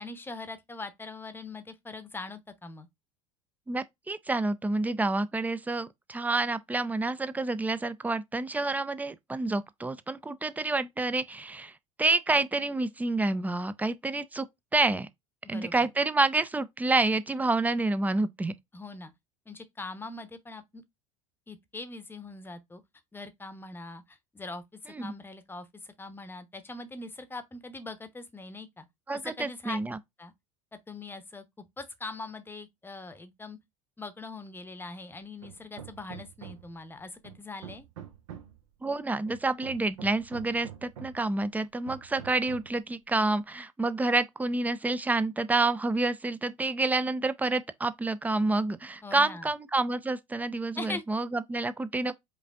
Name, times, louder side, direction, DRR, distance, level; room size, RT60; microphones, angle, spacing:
voice 1, 0.0-2.9 15.4-15.9 18.7-19.1 19.5-20.8 21.5-22.8 23.1-28.9 29.2-29.8 30.2-30.3 30.9-31.4 31.8-33.6 34.0-37.8 49.0-49.5 50.8-51.0, left 3 dB, 10° left, 0.8 m, -42 dB
voice 2, 3.7-11.7 12.0-14.5 14.7-15.1 15.5-18.5 24.9-25.1 29.1-30.0 38.8-52.1, right 2 dB, 10° right, 0.4 m, -28 dB
Hammer, 35.4-36.8 37.2-38.6 39.3-41.3 41.9-42.8, right 9 dB, 75° right, 0.9 m, -46 dB
5.1 x 2.5 x 3.4 m
hypercardioid pair, 75°, 17 cm